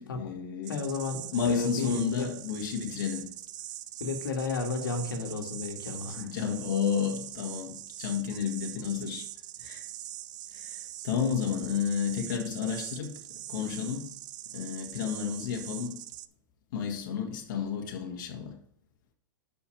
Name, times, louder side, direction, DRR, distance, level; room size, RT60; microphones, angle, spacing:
voice 1, 0.0-0.8 1.3-3.3 6.0-9.3 9.6-9.9 10.5-14.2 14.5-16.0 16.7-18.6, left 7 dB, 65° left, 1.7 m, -32 dB
sound 1, 0.6-16.3, right 13 dB, 60° right, 0.6 m, -43 dB
voice 2, 0.7-2.3 4.0-6.3, left 4 dB, 85° left, 1.9 m, -33 dB
6.3 x 5.7 x 6.9 m
hypercardioid pair, 125°, 11 cm